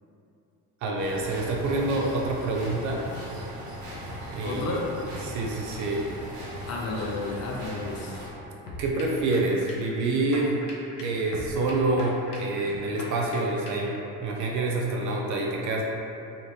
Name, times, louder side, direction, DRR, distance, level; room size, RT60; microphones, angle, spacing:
voice 1, 0.8-3.0 4.1-6.0 8.8-10.6 11.0-13.9 14.2-15.8, right 2 dB, 40° right, -1 dB, 0.4 m, -27 dB
sound 1, 1.0-8.3, equal, 85° right, 0.7 m, -39 dB
voice 2, 4.4-4.9 6.7-8.2, left 3 dB, 35° left, -2 dB, 0.5 m, -32 dB
sound 2, 8.7-14.0, left 1 dB, 85° left, 0.6 m, -41 dB
3.1 x 2.4 x 2.6 m, 2.8 s
hypercardioid pair, 60°, 46 cm